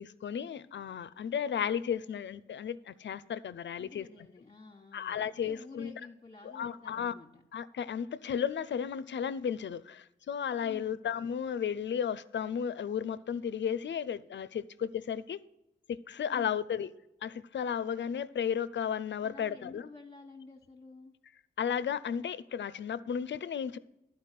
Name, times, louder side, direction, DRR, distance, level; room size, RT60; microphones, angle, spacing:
voice 1, 0.0-4.1 4.9-5.9 6.4-7.1 7.5-15.4 15.9-16.9 17.2-19.9 21.6-23.8, left 8 dB, 65° left, 0.5 m, -34 dB
voice 2, 3.8-7.4 10.6-11.0 16.3-16.6 19.2-21.1, left 3 dB, 30° left, 1.3 m, -51 dB
11.0 x 4.8 x 7.5 m
cardioid pair, 50°, 20 cm